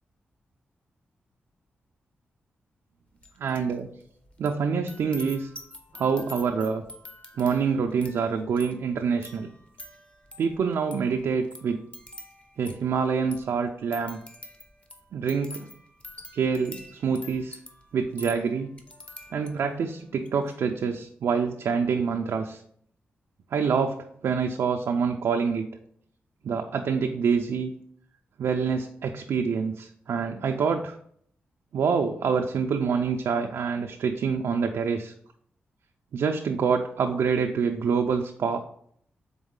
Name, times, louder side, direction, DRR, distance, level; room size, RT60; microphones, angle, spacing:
sound 1, 3.2-3.7 4.0-19.8 20.2-20.5, left 1 dB, 30° left, 0.8 m, -46 dB
voice 1, 3.4-3.9 4.4-5.5 5.9-6.8 7.4-9.5 10.4-11.8 12.6-14.2 15.1-15.7 16.3-17.6 17.9-18.7 19.3-22.6 23.5-25.7 26.4-27.7 28.4-31.0 31.7-35.1 36.1-38.6, right 6 dB, 75° right, 4 dB, 0.3 m, -26 dB
3.9 x 3.5 x 3.7 m, 0.65 s
cardioid pair, 60°, 4 cm